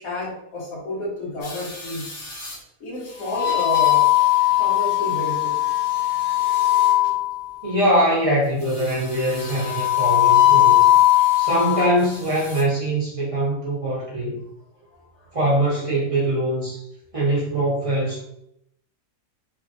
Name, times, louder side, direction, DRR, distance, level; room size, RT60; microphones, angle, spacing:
voice 1, 0.0-2.1 2.8-4.1 4.5-5.6 14.9-15.1, left 1 dB, 75° left, -5 dB, 1.5 m, -30 dB
sound 1, 1.4-2.6 3.2-7.5 8.7-11.9 12.3-12.6, left 14 dB, 45° left, 0.8 m, -20 dB
voice 2, 7.6-10.8 11.4-14.4 15.3-16.8 17.1-18.2, right 1 dB, 30° right, -7 dB, 0.7 m, -22 dB
3.3 x 2.2 x 2.5 m, 0.76 s
omnidirectional pair, 1.5 m